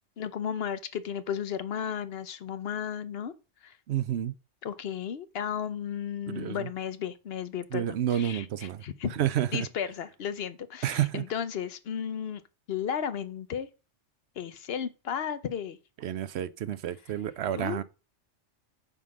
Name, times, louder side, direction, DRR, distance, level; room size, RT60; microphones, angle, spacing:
voice 1, 0.2-3.3 3.6-3.8 4.6-9.1 9.5-12.4 12.7-13.7 14.4-15.8 17.5-17.8, left 8 dB, 60° left, 0.9 m, -34 dB
voice 2, 3.9-4.3 6.3-6.7 7.7-8.8 9.2-9.7 10.8-11.3 16.0-17.8, right 11 dB, 70° right, 0.8 m, -30 dB
8.9 x 3.9 x 6.2 m
omnidirectional pair, 1.2 m